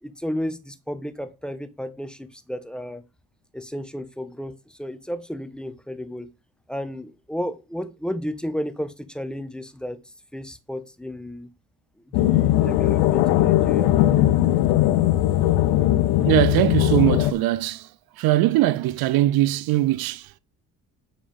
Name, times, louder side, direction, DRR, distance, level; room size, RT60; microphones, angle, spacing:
voice 1, 0.0-3.0 3.5-6.3 6.7-10.0 10.3-11.5 12.1-13.9, equal, ahead, 1.4 m, -33 dB
sound 1, 12.1-17.3, left 14 dB, 85° left, 0.8 m, -19 dB
voice 2, 16.2-17.9 18.2-20.4, right 16 dB, 70° right, 0.5 m, -21 dB
9.2 x 4.9 x 5.3 m
supercardioid pair, 80°, 37 cm